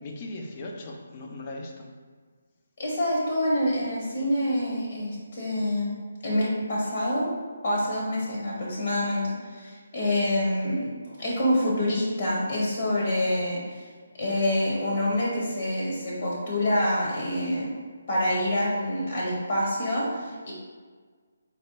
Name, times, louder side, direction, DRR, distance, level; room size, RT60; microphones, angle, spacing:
voice 1, 0.0-1.9, left 2 dB, 25° left, 1 dB, 0.5 m, -38 dB
voice 2, 2.8-5.9 6.2-7.3 7.6-13.8 14.2-17.7 18.1-20.5, left 1 dB, 45° left, -4 dB, 1.0 m, -26 dB
4.1 x 2.1 x 4.5 m, 1.5 s
hypercardioid pair, 165°, 0 cm